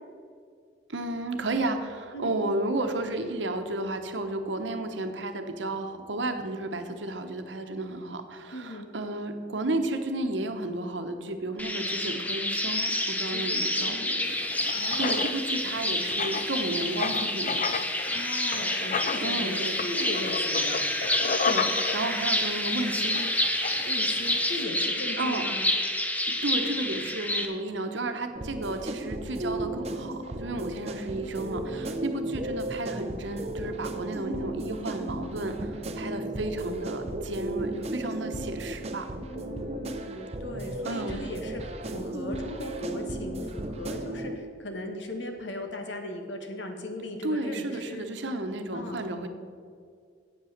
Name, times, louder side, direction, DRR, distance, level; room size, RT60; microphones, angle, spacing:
voice 1, 0.9-17.5 19.2-19.7 21.4-23.3 25.2-25.4 26.4-39.1 40.8-41.2 47.2-49.3, right 2 dB, 80° right, 6 dB, 1.0 m, -33 dB
voice 2, 8.5-8.9 13.3-14.4 14.7-15.3 18.1-20.8 23.8-25.7 32.1-32.3 39.2-48.0 48.7-49.1, left 1 dB, 75° left, 4 dB, 1.5 m, -38 dB
sound 1, 11.6-27.4, left 1 dB, 10° left, 0.7 m, -28 dB
Writing, 14.2-24.6, left 5 dB, 45° left, 0.4 m, -34 dB
sound 2, 28.4-44.4, right 1 dB, 35° right, 0.7 m, -35 dB
8.4 x 8.3 x 6.6 m, 2.2 s
head